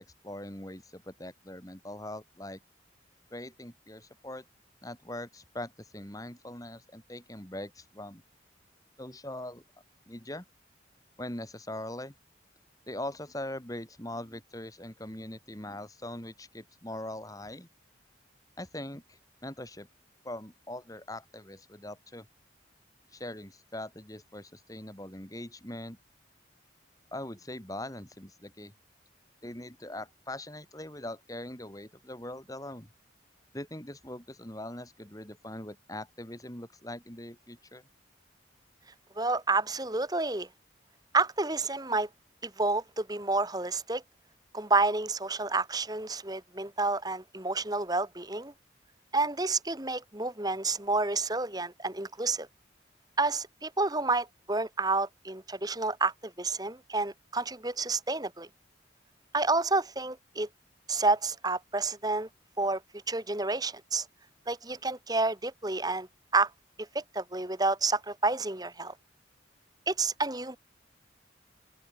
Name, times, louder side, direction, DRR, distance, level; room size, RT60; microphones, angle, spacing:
voice 1, 0.0-2.6 3.3-4.4 4.8-8.2 9.0-9.6 10.1-10.4 11.2-12.1 12.9-17.7 18.6-19.9 20.2-22.3 23.1-26.0 27.1-28.7 29.4-32.9 33.5-37.8, left 1 dB, 20° left, 4.0 m, -41 dB
voice 2, 39.2-40.5 41.1-42.1 42.4-44.0 44.5-48.5 49.1-52.5 53.2-58.5 59.3-60.5 60.9-62.3 62.6-62.8 63.1-64.1 64.5-66.1 66.3-66.5 66.9-68.9 69.9-70.6, right 3 dB, 20° right, 2.0 m, -29 dB
open air
head